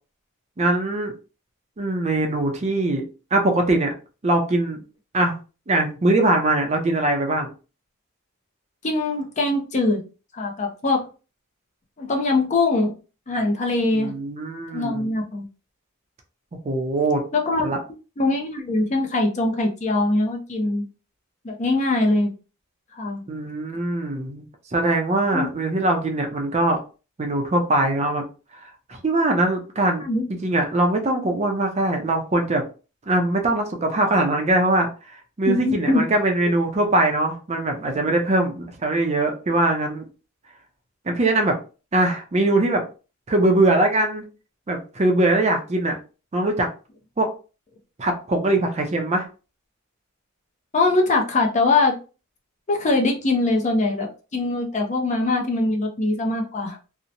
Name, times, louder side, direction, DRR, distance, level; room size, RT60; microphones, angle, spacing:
voice 1, 0.6-1.1 1.8-3.9 4.2-4.8 5.1-5.3 5.7-7.5 13.9-15.1 16.6-17.2 17.6-17.8 23.3-24.4 24.7-26.8 27.2-28.2 28.9-30.0 30.4-32.6 33.1-40.0 41.1-41.6 41.9-42.8 43.3-44.2 44.7-46.0 46.3-46.7 47.2-47.3 48.0-49.3, right 2 dB, 30° right, 4 dB, 0.4 m, -22 dB
voice 2, 8.8-10.0 10.3-11.1 12.0-12.9 13.3-14.1 14.7-15.5 17.3-17.6 18.2-20.8 21.4-22.3 22.9-23.2 25.3-25.5 30.0-30.3 31.2-31.3 35.5-36.0 50.7-51.9 52.7-54.1 54.3-56.8, left 2 dB, 35° left, 2 dB, 0.5 m, -22 dB
2.8 x 2.1 x 2.5 m, 0.34 s
head